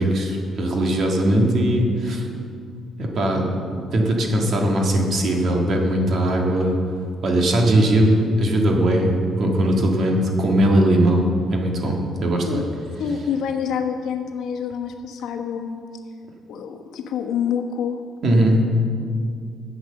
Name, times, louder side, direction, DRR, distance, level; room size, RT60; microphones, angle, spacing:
voice 1, 0.0-2.3 3.0-6.8 7.2-12.6 18.2-18.6, right 1 dB, 45° right, 0 dB, 1.7 m, -20 dB
voice 2, 12.5-15.8 16.5-18.0, left 7 dB, 75° left, 4 dB, 1.1 m, -27 dB
13.0 x 8.0 x 6.5 m, 2.3 s
cardioid pair, 165°, 0 cm